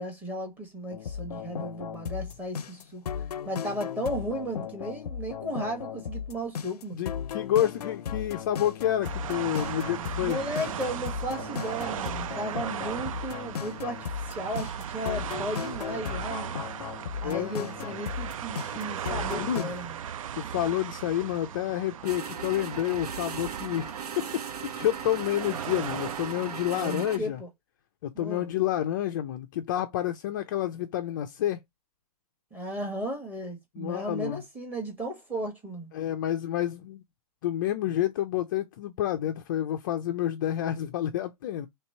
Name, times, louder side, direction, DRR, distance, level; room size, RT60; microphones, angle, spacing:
voice 1, 0.0-3.0 3.4-7.0 10.2-16.6 17.2-20.0 26.7-27.5 28.1-28.5 32.5-35.9, right 1 dB, 10° right, 1.1 m, -35 dB
sound 1, 0.9-19.7, left 8 dB, 90° left, 0.5 m, -36 dB
voice 2, 6.9-10.4 17.2-17.7 19.4-19.8 20.4-24.3 24.6-27.4 28.0-31.6 33.8-34.4 35.9-37.0 37.4-41.7, left 12 dB, 30° left, 0.4 m, -29 dB
sound 2, 9.0-27.0, right 9 dB, 60° right, 0.4 m, -38 dB
sound 3, 22.0-27.2, right 7 dB, 90° right, 0.8 m, -38 dB
3.2 x 2.9 x 4.2 m
hypercardioid pair, 155°, 19 cm